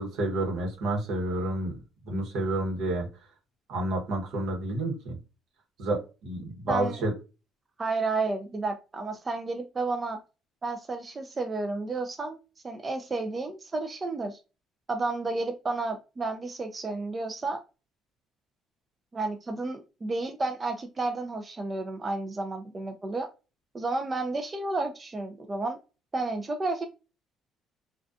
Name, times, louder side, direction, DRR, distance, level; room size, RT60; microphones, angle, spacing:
voice 1, 0.0-1.7 2.0-3.1 3.7-5.1 5.8-7.1, right 2 dB, 75° right, 0.9 m, -29 dB
voice 2, 6.7-7.0 7.8-10.2 10.6-12.4 12.6-14.4 14.9-17.6 19.1-23.3 23.7-25.8 26.1-26.9, right 3 dB, 30° right, 0.3 m, -31 dB
2.4 x 2.2 x 2.5 m
supercardioid pair, 80°, 0 cm